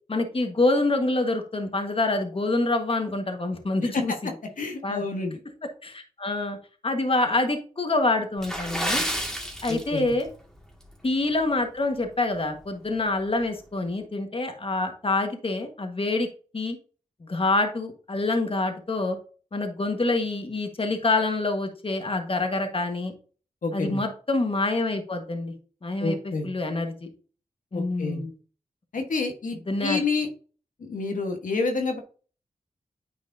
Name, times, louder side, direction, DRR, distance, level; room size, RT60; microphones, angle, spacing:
voice 1, 0.1-4.3 4.8-5.0 5.8-6.6 6.8-9.0 9.6-10.3 11.0-16.3 16.5-16.8 17.2-19.2 19.5-23.1 23.7-25.5 25.8-26.2 26.4-27.1 27.7-28.3 29.7-30.0, left 2 dB, 40° left, 5 dB, 1.6 m, -26 dB
voice 2, 4.6-5.4 9.7-10.1 23.6-24.0 26.0-26.5 27.7-28.2 28.9-30.3 30.8-32.0, left 3 dB, 75° left, 3 dB, 1.5 m, -28 dB
Water / Splash splatter, 8.4-10.3 10.6-10.8 11.4-11.6 12.1-12.2, equal, 5° left, 2.1 m, -30 dB
9.6 x 4.8 x 2.8 m, 0.38 s
cardioid pair, 50°, 14 cm